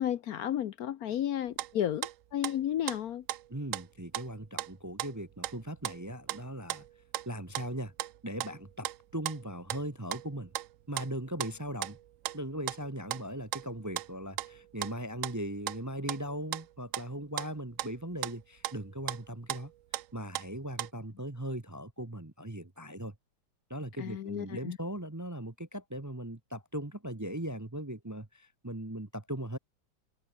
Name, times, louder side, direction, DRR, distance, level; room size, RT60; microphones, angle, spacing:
voice 1, 0.0-3.2 24.0-24.8, left 11 dB, 65° left, 1.1 m, -33 dB
sound 1, 1.5-2.2 2.4-3.9 4.1-17.1 17.4-20.9, right 13 dB, 70° right, 0.8 m, -38 dB
voice 2, 3.5-6.8 7.3-7.9 8.2-10.5 10.9-12.0 12.3-19.7 20.1-23.1 23.7-29.6, right 1 dB, 15° right, 0.9 m, -39 dB
omnidirectional pair, 1.9 m